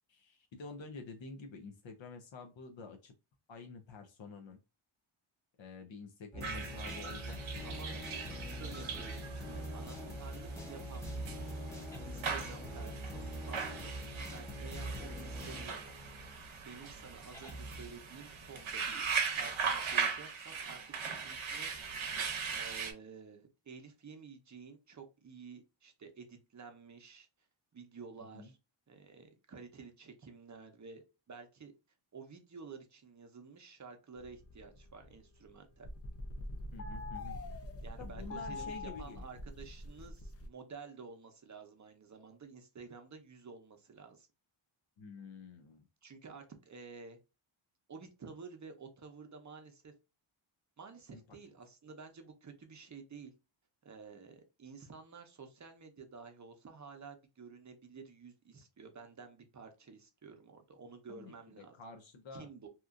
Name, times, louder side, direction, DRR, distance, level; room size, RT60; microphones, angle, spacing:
voice 1, 0.1-3.1 3.5-4.6 5.6-8.0 11.5-11.6 28.3-28.5 36.7-37.6 38.0-39.3 45.0-45.8 51.1-51.4 61.1-62.5, left 4 dB, 65° left, 4 dB, 0.6 m, -49 dB
sound 1, 6.3-16.4 16.8-16.9 17.3-17.9, equal, 5° left, 0.9 m, -43 dB
voice 2, 6.4-6.8 7.6-7.9 8.5-11.3 12.0-16.0 16.6-19.0 19.4-21.7 22.5-27.3 27.7-28.6 28.9-31.7 32.1-35.9 37.8-44.3 46.0-47.2 47.9-49.9 50.8-53.3 53.8-61.8 62.3-62.7, right 5 dB, 35° right, 5 dB, 0.7 m, -51 dB
sound 2, 6.4-22.9, right 6 dB, 70° right, 0.7 m, -40 dB
sound 3, 34.2-35.5 35.7-40.5, left 2 dB, 35° left, 0.4 m, -44 dB
2.9 x 2.4 x 2.4 m, 0.28 s
wide cardioid pair, 115°, 49 cm